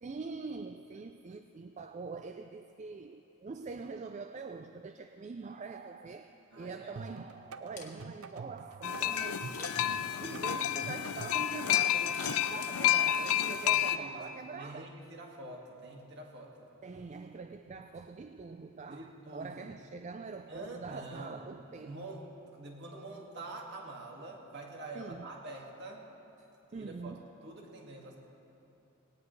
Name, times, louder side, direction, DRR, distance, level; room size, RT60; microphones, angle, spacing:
voice 1, 0.0-9.8 10.2-14.9 16.8-22.0 24.9-25.3 26.4-26.5 26.7-27.3, right 4 dB, 35° right, 8 dB, 0.3 m, -44 dB
voice 2, 6.5-6.9 10.0-10.3 13.6-14.2 14.5-16.7 18.9-19.7 20.5-21.4 21.8-26.0 26.7-27.1 27.4-28.2, right 2 dB, 55° right, -1 dB, 1.9 m, -46 dB
sound 1, 7.0-12.6, right 4 dB, 80° right, 0.6 m, -47 dB
Camera, 7.8-8.3 9.5-10.0 12.1-13.0 13.4-13.5, left 4 dB, 35° left, 1.7 m, -48 dB
sound 2, 8.8-14.0, left 11 dB, 90° left, 0.5 m, -30 dB
19.0 x 18.0 x 3.2 m, 3.0 s
head